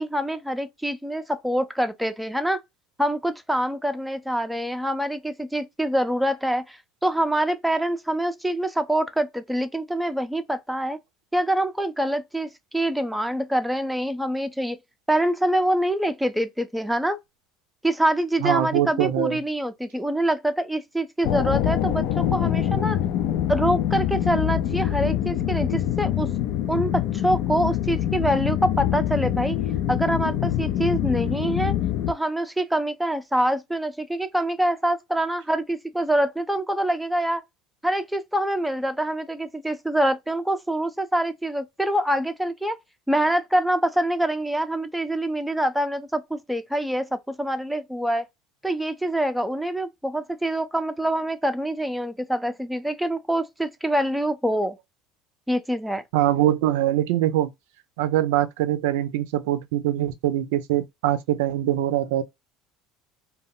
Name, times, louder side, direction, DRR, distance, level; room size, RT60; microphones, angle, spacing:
voice 1, 0.0-2.6 3.0-11.0 11.3-12.5 12.7-14.8 15.1-17.2 17.8-23.0 23.5-26.3 26.7-29.6 29.9-31.7 32.1-37.4 37.8-42.8 43.1-48.2 48.6-54.8 55.5-56.0, right 1 dB, 5° right, 0.4 m, -25 dB
voice 2, 18.4-19.4 56.1-57.5 58.0-62.2, right 12 dB, 80° right, 0.4 m, -23 dB
sound 1, 21.2-32.1, left 11 dB, 65° left, 0.3 m, -25 dB
2.1 x 2.1 x 3.7 m
supercardioid pair, 105°, 0 cm